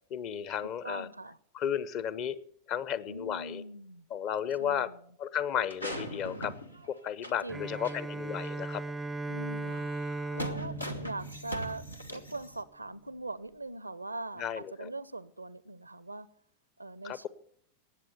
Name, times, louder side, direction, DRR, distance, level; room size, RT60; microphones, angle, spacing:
voice 1, 0.1-1.1 1.5-2.4 2.7-3.6 4.1-4.9 5.2-6.5 6.9-8.8 14.4-14.9 17.0-17.3, left 9 dB, 40° left, 0.8 m, -33 dB
voice 2, 0.6-1.4 3.1-4.1 4.6-5.0 7.4-7.9 9.3-16.3 16.8-17.3, right 2 dB, 85° right, 0.5 m, -42 dB
sound 1, 5.5-7.5 7.8-8.0 8.4-8.5 9.6-12.6, right 1 dB, 85° left, 1.2 m, -41 dB
Bowed string instrument, 7.5-12.2, right 2 dB, 10° right, 0.4 m, -38 dB
19.0 x 7.6 x 6.8 m
figure-of-eight pair, 90°, 0 cm